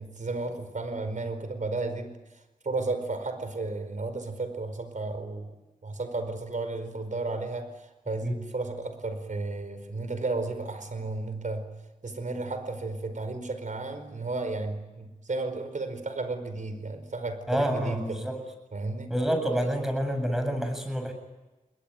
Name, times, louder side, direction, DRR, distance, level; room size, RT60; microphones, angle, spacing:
voice 1, 0.0-5.5 5.8-11.7 12.0-18.3 18.7-19.1, right 3 dB, 65° right, 9 dB, 4.8 m, -33 dB
voice 2, 17.5-18.4 19.1-21.1, equal, 5° right, 5 dB, 7.9 m, -28 dB
29.5 x 21.5 x 9.4 m, 1.1 s
wide cardioid pair, 75°, 14 cm